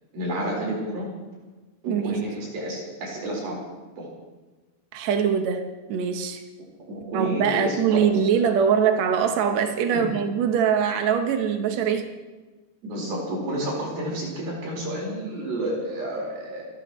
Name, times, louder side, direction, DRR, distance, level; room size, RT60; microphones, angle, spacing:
voice 1, 0.1-1.1 1.8-3.6 4.0-4.1 6.9-8.1 9.9-10.1 12.8-16.6, right 1 dB, 65° right, -3 dB, 6.2 m, -30 dB
voice 2, 1.8-2.2 4.9-6.4 7.1-12.1, right 7 dB, 85° right, 6 dB, 1.5 m, -23 dB
29.5 x 13.0 x 3.1 m, 1.2 s
omnidirectional pair, 4.6 m